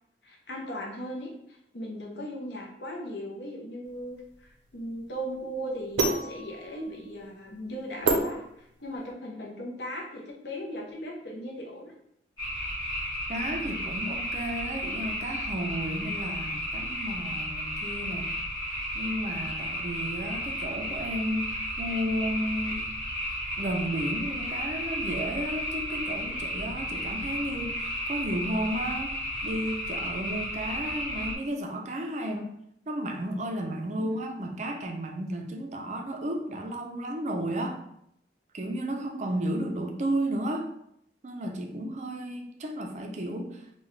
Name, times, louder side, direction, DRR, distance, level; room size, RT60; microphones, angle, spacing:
voice 1, 0.2-11.9 34.0-34.2, equal, 70° left, -1 dB, 0.7 m, -38 dB
sound 1, 3.9-9.1, right 2 dB, 90° right, 0.6 m, -31 dB
sound 2, 12.4-31.3, equal, 25° left, 1.5 m, -33 dB
voice 2, 13.3-18.4 18.9-22.8 23.6-32.5 32.9-37.8 38.5-40.7 41.2-43.7, right 1 dB, 40° right, 3 dB, 0.4 m, -33 dB
3.8 x 2.2 x 3.1 m, 0.75 s
head